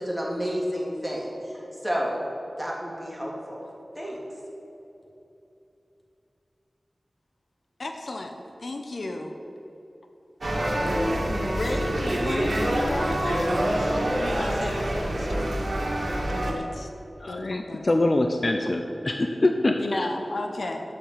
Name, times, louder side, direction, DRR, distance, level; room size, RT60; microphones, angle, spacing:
voice 1, 0.0-2.1 2.6-3.6 3.9-4.2, equal, 5° right, -4 dB, 3.3 m, -30 dB
voice 2, 7.8-9.4 11.3-13.6 14.2-15.7 16.3-16.9 17.3-17.9 19.8-20.8, left 2 dB, 70° left, 4 dB, 1.0 m, -33 dB
sound 1, 10.4-16.5, right 1 dB, 70° right, 2.3 m, -26 dB
voice 3, 17.2-20.1, left 2 dB, 45° left, 5 dB, 0.7 m, -24 dB
8.8 x 8.3 x 9.2 m, 2.9 s
wide cardioid pair, 70°, 0 cm